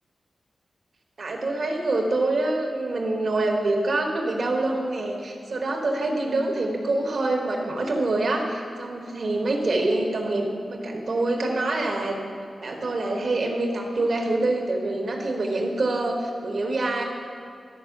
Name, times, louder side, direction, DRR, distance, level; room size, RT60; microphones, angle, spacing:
voice 1, 1.2-12.2 12.6-17.0, right 2 dB, 70° right, 1 dB, 1.5 m, -25 dB
12.5 x 4.4 x 5.9 m, 2.4 s
cardioid pair, 45°, 0 cm